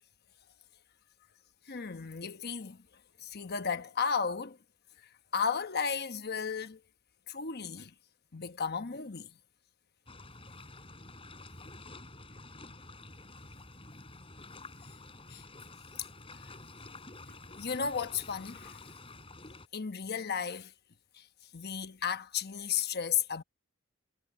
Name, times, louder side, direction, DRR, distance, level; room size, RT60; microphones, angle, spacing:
voice 1, 1.7-2.8 3.2-4.6 5.3-6.8 7.3-7.9 8.3-9.3 15.3-15.4 17.3-18.8 19.7-20.7 21.1-21.3 21.5-23.4, left 6 dB, 50° left, 1.0 m, -34 dB
sound 1, 10.1-19.7, left 2 dB, 25° left, 6.8 m, -50 dB
head